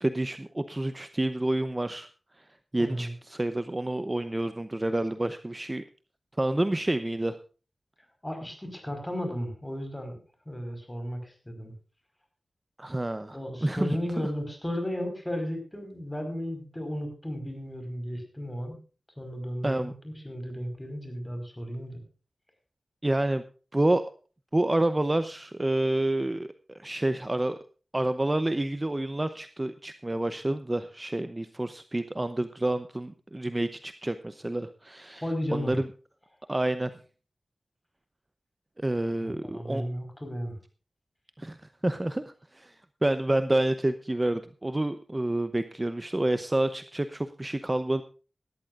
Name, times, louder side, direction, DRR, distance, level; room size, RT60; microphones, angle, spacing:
voice 1, 0.0-2.1 2.7-5.8 6.4-7.4 12.8-13.9 14.2-14.3 19.6-19.9 23.0-23.4 23.7-24.0 24.5-27.6 27.9-35.2 35.5-35.8 36.5-36.9 38.8-39.8 41.4-41.6 41.8-42.8 43.0-48.0, right 1 dB, 20° right, 10 dB, 0.7 m, -28 dB
voice 2, 2.8-3.1 8.2-10.2 10.4-11.7 13.3-18.7 19.2-22.0 35.1-35.8 39.2-40.6, equal, 10° left, 6 dB, 4.8 m, -34 dB
19.0 x 13.5 x 2.5 m, 0.36 s
wide cardioid pair, 105°, 0 cm